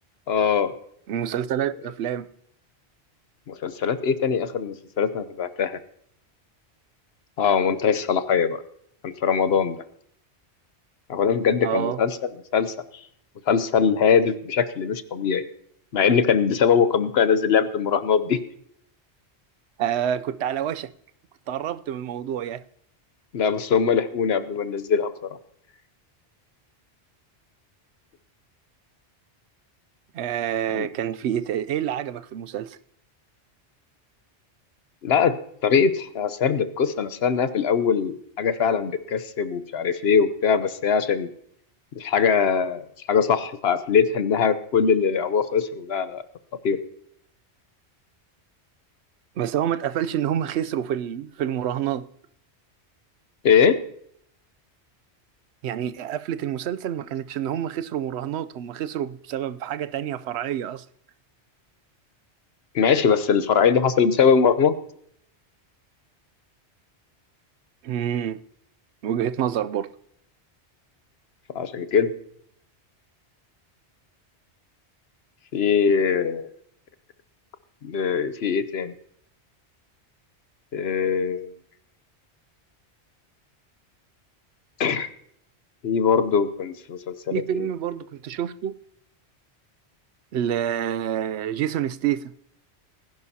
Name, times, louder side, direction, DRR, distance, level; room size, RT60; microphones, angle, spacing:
voice 1, 0.3-0.7 3.5-5.8 7.4-8.6 9.0-9.8 11.1-12.1 12.5-12.7 13.5-15.4 15.9-18.4 23.3-25.1 30.7-30.9 35.0-41.3 42.0-46.2 46.6-46.8 53.4-53.8 62.7-64.7 71.5-72.1 75.5-76.5 77.8-78.9 80.7-81.5 84.8-85.1 85.8-87.7, left 6 dB, 65° left, 1.0 m, -22 dB
voice 2, 1.1-2.3 11.6-12.0 19.8-20.9 21.5-22.6 30.1-32.8 49.4-52.1 55.6-60.8 67.8-68.4 69.0-69.9 87.3-88.7 90.3-92.3, right 10 dB, 75° right, 0.9 m, -27 dB
20.0 x 11.0 x 2.8 m
omnidirectional pair, 1.1 m